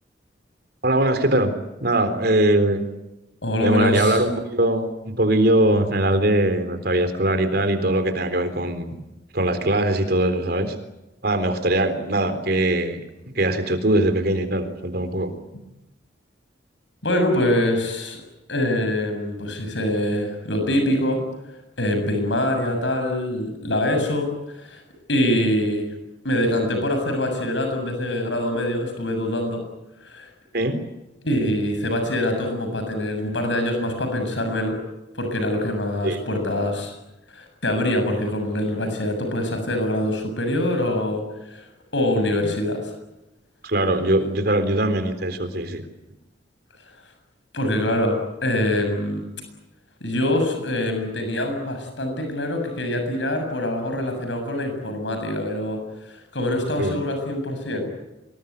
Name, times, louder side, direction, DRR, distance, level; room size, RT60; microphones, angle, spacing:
voice 1, 0.8-1.5 1.8-2.8 3.6-9.0 9.3-10.7 11.2-13.0 13.3-15.3 30.5-30.8 36.0-36.2 43.6-45.8 56.8-57.0, right 1 dB, 55° right, 9 dB, 3.9 m, -21 dB
voice 2, 3.4-4.2 17.0-18.2 18.5-21.2 21.8-24.8 25.1-25.9 26.2-29.6 30.0-30.3 31.2-34.8 35.2-36.9 37.3-41.7 41.9-42.8 47.5-49.2 50.0-57.9, left 1 dB, 75° left, 5 dB, 7.4 m, -24 dB
26.0 x 22.0 x 9.6 m, 0.97 s
head